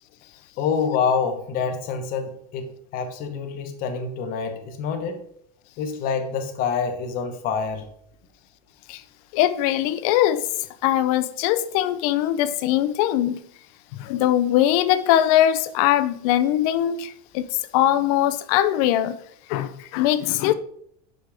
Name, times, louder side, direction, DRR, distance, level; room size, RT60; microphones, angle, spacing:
voice 1, 0.6-5.2 5.8-7.8, left 6 dB, 40° left, 1.0 m, -26 dB
voice 2, 9.3-10.4 10.8-13.4 14.0-17.5 17.7-19.1 19.5-20.5, left 12 dB, 60° left, 0.5 m, -21 dB
5.8 x 5.2 x 3.4 m
supercardioid pair, 140°, 21 cm